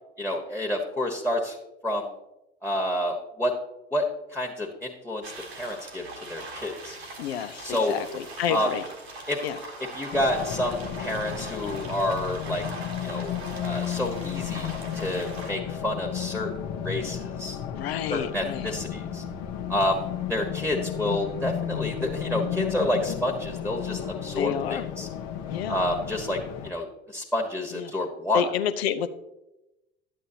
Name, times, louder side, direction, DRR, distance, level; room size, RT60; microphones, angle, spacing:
voice 1, 0.2-1.6 1.8-2.1 2.6-3.5 3.9-4.1 4.3-5.2 5.5-7.0 7.6-7.9 8.5-8.7 9.3-9.4 9.9-12.6 13.0-13.3 13.6-16.5 16.8-17.6 18.1-19.2 19.7-20.0 20.3-25.1 25.7-28.4, left 1 dB, 5° left, 3 dB, 1.4 m, -29 dB
sound 1, 5.2-15.5, right 2 dB, 80° right, 1.4 m, -41 dB
voice 2, 7.2-8.8 9.4-9.6 12.5-12.7 17.7-18.7 22.3-22.4 24.3-24.9 25.5-25.8 27.7-27.9 28.3-29.1, left 9 dB, 75° left, 12 dB, 0.6 m, -29 dB
Race car auto racing, 10.1-26.7, left 9 dB, 55° left, 1.0 m, -33 dB
11.0 x 8.6 x 2.8 m, 0.92 s
figure-of-eight pair, 55°, 31 cm